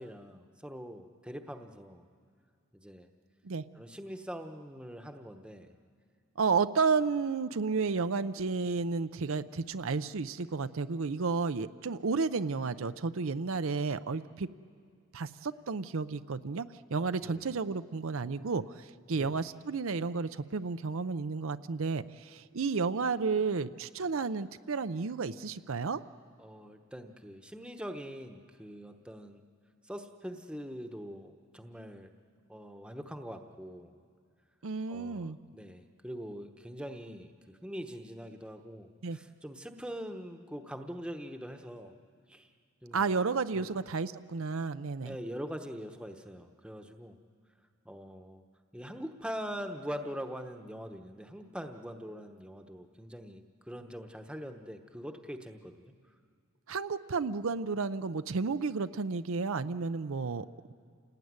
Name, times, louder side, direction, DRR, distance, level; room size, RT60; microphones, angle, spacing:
voice 1, 0.0-2.0 2.7-3.1 3.7-5.7 17.2-17.5 19.1-19.4 26.4-29.4 29.8-32.1 32.5-33.9 34.9-42.0 42.3-42.5 42.8-43.1 43.5-43.7 45.0-47.2 47.8-48.4 48.7-55.9, equal, 5° right, 5 dB, 1.0 m, -43 dB
voice 2, 6.4-14.5 15.1-16.7 16.9-26.0 34.6-35.4 39.0-39.2 42.9-45.2 56.7-60.7, right 4 dB, 65° right, 11 dB, 0.6 m, -32 dB
28.5 x 18.5 x 9.6 m, 2.2 s
head